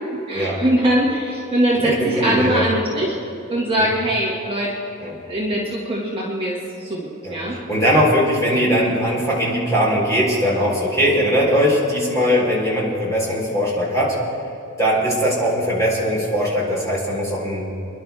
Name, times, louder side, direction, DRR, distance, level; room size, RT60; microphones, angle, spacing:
voice 1, 0.3-3.1 3.5-4.7 5.3-7.6, right 1 dB, 25° right, -5 dB, 1.9 m, -21 dB
voice 2, 1.8-2.6 3.8-3.9 5.0-5.1 7.2-14.2 14.8-17.7, equal, 15° left, -5 dB, 3.9 m, -20 dB
28.0 x 11.5 x 3.5 m, 2.8 s
head